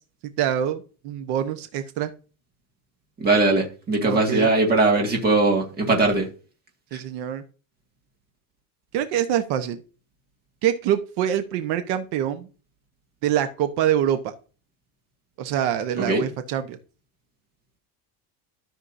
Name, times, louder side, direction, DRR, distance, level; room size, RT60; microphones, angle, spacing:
voice 1, 0.4-2.1 4.1-4.5 6.9-7.4 8.9-9.8 10.6-12.5 13.2-14.3 15.4-16.8, right 10 dB, 70° right, 1.1 m, -25 dB
voice 2, 3.2-6.3 16.0-16.2, right 2 dB, 25° right, 2.0 m, -20 dB
13.0 x 6.4 x 2.6 m
cardioid pair, 175°, 40 cm